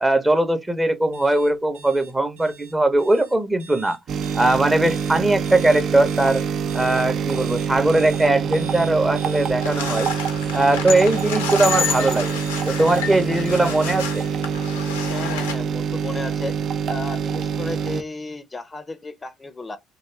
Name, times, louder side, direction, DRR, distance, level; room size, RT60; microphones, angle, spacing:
voice 1, 0.0-4.0 4.3-6.4 6.7-10.1 10.5-12.4 12.7-14.2, right 2 dB, 15° right, 0.7 m, -20 dB
sound 1, 1.1-14.2, right 4 dB, 90° right, 1.0 m, -44 dB
sound 2, 4.1-18.0, right 7 dB, 60° right, 0.3 m, -25 dB
sound 3, 9.6-15.6, left 7 dB, 85° left, 0.5 m, -29 dB
voice 2, 15.1-16.5 16.9-19.8, left 3 dB, 25° left, 0.4 m, -33 dB
2.6 x 2.3 x 3.0 m
hypercardioid pair, 55°, 0 cm